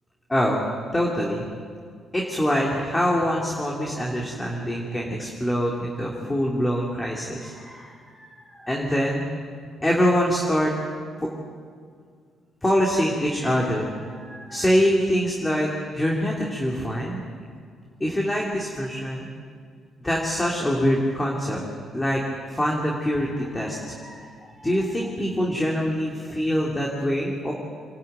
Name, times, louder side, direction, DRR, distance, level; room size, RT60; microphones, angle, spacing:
voice 1, 0.3-0.6 0.9-1.4 2.1-9.2 9.8-10.7 12.6-17.2 18.0-19.3 20.0-21.6 21.9-22.2 22.5-24.2 24.5-27.5, equal, 15° left, -2 dB, 3.2 m, -24 dB
26.5 x 12.0 x 9.3 m, 2.1 s
cardioid pair, 90°, 0 cm